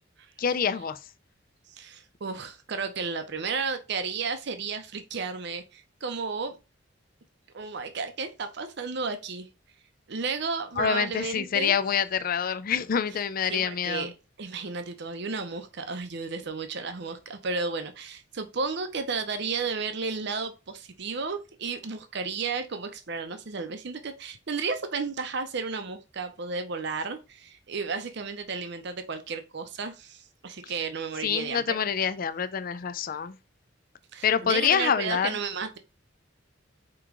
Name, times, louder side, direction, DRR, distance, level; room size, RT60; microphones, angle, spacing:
voice 1, 0.4-1.0 10.8-14.1 31.2-33.4 34.2-35.4, left 7 dB, 50° left, 0.4 m, -26 dB
voice 2, 1.7-6.6 7.5-9.5 10.1-11.8 13.5-14.1 14.4-31.8 34.1-35.8, right 4 dB, 60° right, 0.7 m, -33 dB
4.7 x 3.0 x 3.6 m
head